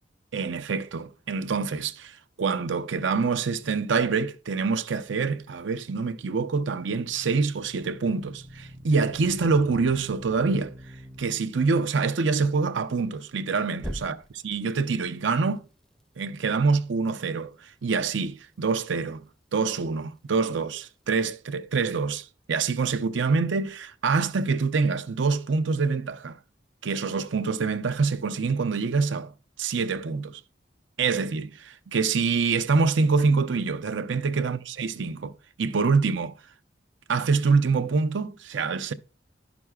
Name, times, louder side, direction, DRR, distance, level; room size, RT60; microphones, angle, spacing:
voice 1, 0.3-10.7 11.2-15.6 16.2-19.3 19.5-26.4 26.8-29.3 29.6-30.4 31.0-36.3 37.1-38.9, right 4 dB, 85° right, 0.6 m, -26 dB
sound 1, 5.5-11.2 13.8-14.5, equal, 5° left, 0.5 m, -43 dB
11.0 x 6.0 x 2.3 m
head